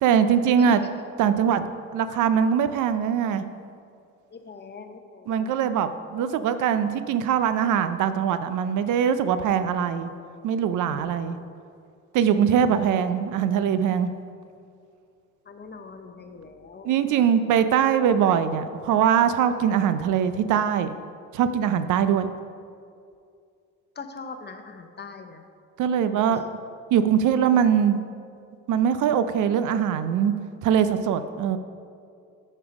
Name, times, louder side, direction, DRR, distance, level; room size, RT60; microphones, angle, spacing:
voice 1, 0.0-0.8 1.2-1.7 1.9-3.4 5.3-10.1 10.4-11.4 12.1-14.1 16.9-20.9 21.3-22.3 25.8-26.4 26.9-28.0 28.7-30.3 30.6-31.6, right 8 dB, 80° right, 11 dB, 0.5 m, -22 dB
voice 2, 4.3-5.5 10.9-11.1 12.3-12.6 15.5-17.5 21.8-22.0 24.0-25.4 26.3-26.5, left 4 dB, 35° left, 7 dB, 0.8 m, -41 dB
9.4 x 5.5 x 5.2 m, 2.3 s
cardioid pair, 90°, 30 cm